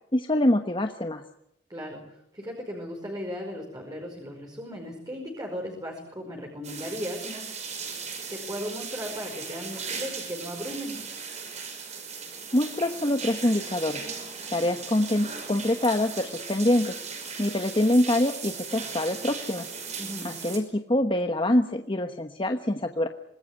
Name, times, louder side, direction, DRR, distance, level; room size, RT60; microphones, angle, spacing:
voice 1, 0.1-1.2 12.5-14.0 14.5-17.0 17.4-19.7 20.2-23.1, left 1 dB, 30° left, 6 dB, 1.2 m, -25 dB
voice 2, 1.7-7.5 8.3-11.0 20.0-20.3, equal, 20° right, 1 dB, 5.1 m, -36 dB
sound 1, 6.6-20.6, right 5 dB, 40° right, 5.5 m, -37 dB
26.0 x 20.5 x 9.6 m, 0.79 s
head